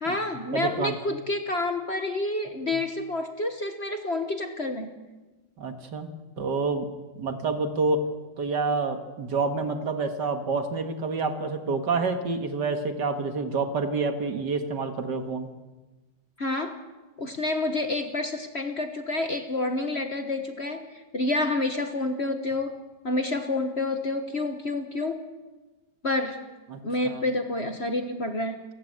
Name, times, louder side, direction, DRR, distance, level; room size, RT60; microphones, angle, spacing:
voice 1, 0.0-4.9 16.4-16.8 17.2-20.9 21.1-22.8 23.0-25.2 26.0-26.4 26.8-28.6, left 2 dB, 35° left, 7 dB, 1.4 m, -28 dB
voice 2, 0.5-1.0 2.7-2.8 5.6-6.1 6.4-6.9 7.2-8.1 8.4-15.5 26.7-26.8 27.0-27.2, right 3 dB, 60° right, 7 dB, 2.2 m, -28 dB
29.5 x 15.0 x 8.0 m, 1.2 s
omnidirectional pair, 2.2 m